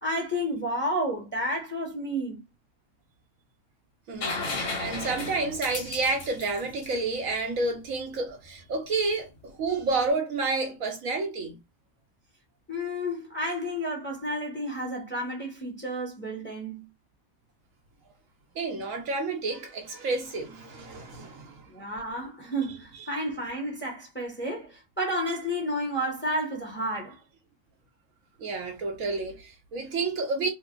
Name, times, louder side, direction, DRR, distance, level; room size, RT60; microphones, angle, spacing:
voice 1, 0.0-2.4 12.7-16.9 21.7-27.2, equal, 10° left, 0.9 m, -31 dB
voice 2, 4.1-11.6 18.6-21.6 28.4-30.5, right 3 dB, 65° right, 1.1 m, -30 dB
sound 1, 4.2-7.9 9.8-9.9, left 3 dB, 60° left, 1.5 m, -34 dB
3.1 x 2.0 x 3.7 m
omnidirectional pair, 1.6 m